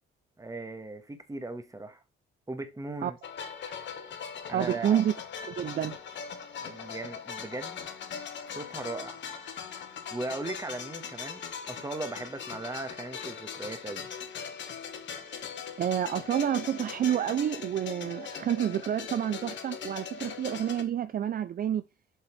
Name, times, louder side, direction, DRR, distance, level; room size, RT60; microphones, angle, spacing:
voice 1, 0.4-2.0 2.5-3.2 4.5-5.0 6.6-7.9 8.5-9.2 10.1-11.4 11.7-14.1, right 2 dB, 15° right, 1.6 m, -38 dB
sound 1, 3.2-20.8, left 7 dB, 65° left, 1.7 m, -40 dB
voice 2, 4.5-5.1 5.5-6.0 15.8-21.8, right 10 dB, 45° right, 0.5 m, -29 dB
8.2 x 5.5 x 3.3 m
cardioid pair, 90°, 20 cm